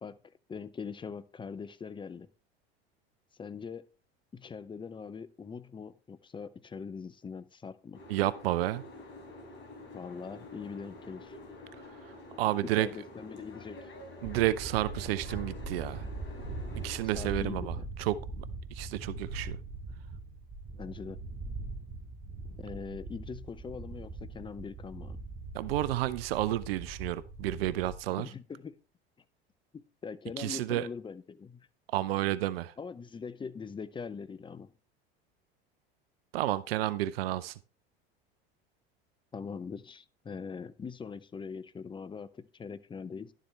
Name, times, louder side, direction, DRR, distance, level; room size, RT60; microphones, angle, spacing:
voice 1, 0.0-2.3 3.4-3.9 4.3-8.0 9.9-11.4 12.6-13.9 17.1-17.9 20.7-21.2 22.6-25.2 28.2-28.7 29.7-31.7 32.8-34.7 39.3-43.3, left 5 dB, 15° left, 0.5 m, -42 dB
Boat Water vehicle, 7.9-17.0, left 2 dB, 40° left, 3.5 m, -48 dB
voice 2, 8.1-8.8 12.0-12.9 14.2-16.1 16.8-18.4 18.7-19.6 25.5-28.3 30.4-30.9 31.9-32.7 36.3-37.6, right 14 dB, 75° right, 0.5 m, -31 dB
sound 1, 14.2-28.0, right 3 dB, 40° right, 1.9 m, -41 dB
11.5 x 7.4 x 3.3 m
hypercardioid pair, 80°, 30 cm